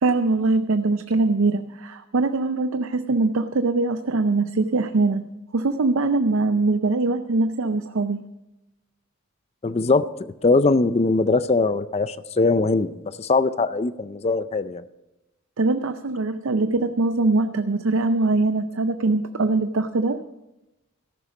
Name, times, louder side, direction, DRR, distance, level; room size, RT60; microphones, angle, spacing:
voice 1, 0.0-5.2 5.5-8.2 15.6-20.2, right 3 dB, 80° right, 9 dB, 0.6 m, -22 dB
voice 2, 9.6-10.0 10.4-14.8, left 3 dB, 30° left, 14 dB, 0.4 m, -21 dB
14.0 x 11.0 x 5.0 m, 0.99 s
head